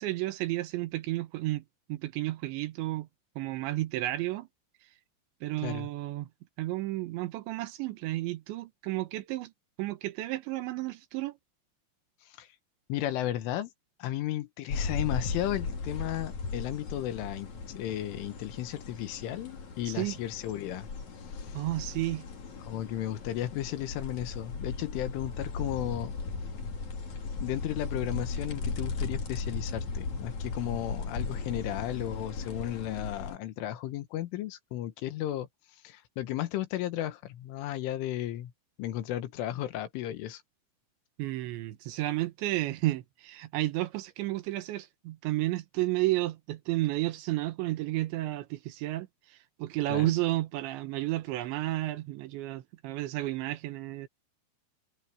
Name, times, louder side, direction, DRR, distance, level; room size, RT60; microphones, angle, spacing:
voice 1, 0.0-1.6 1.9-3.1 3.4-4.5 5.4-6.3 6.6-9.5 9.8-11.4 19.9-20.1 21.5-22.2 41.2-54.1, right 17 dB, 75° right, 3.1 m, -32 dB
voice 2, 12.9-13.7 14.0-20.9 21.3-21.6 22.7-26.1 27.4-35.5 35.8-38.5 38.8-40.4 49.9-50.1, left 13 dB, 80° left, 3.9 m, -34 dB
sound 1, 14.7-33.4, left 4 dB, 40° left, 4.3 m, -37 dB
omnidirectional pair, 5.6 m